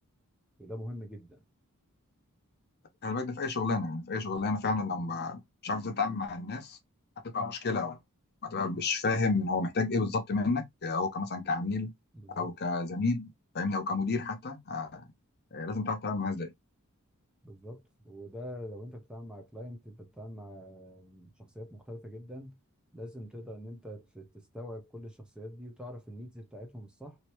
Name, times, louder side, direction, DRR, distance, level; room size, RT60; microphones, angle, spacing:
voice 1, 0.6-1.4 12.1-12.5 17.4-22.6 22.9-27.2, equal, 5° right, 0.7 m, -44 dB
voice 2, 3.0-6.8 7.3-8.0 8.4-11.9 12.4-15.0 15.5-16.5, left 3 dB, 50° left, 0.8 m, -31 dB
3.2 x 2.8 x 2.9 m
head